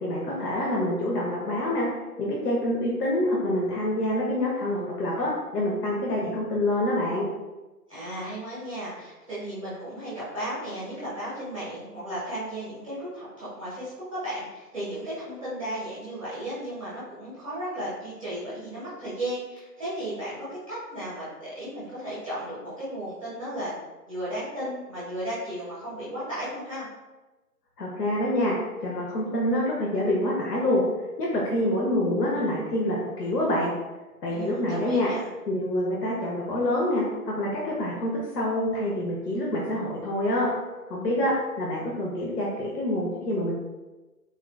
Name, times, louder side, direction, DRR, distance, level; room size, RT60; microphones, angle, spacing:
voice 1, 0.0-1.9 2.2-7.2 27.8-28.6 28.8-30.8 31.2-33.7 34.2-35.1 35.5-40.5 40.9-43.6, left 1 dB, 75° left, -3 dB, 0.8 m, -26 dB
voice 2, 7.9-23.7 24.1-26.9 34.3-35.2, right 1 dB, 20° right, -11 dB, 0.7 m, -35 dB
3.7 x 2.3 x 2.3 m, 1.1 s
figure-of-eight pair, 160°, 49 cm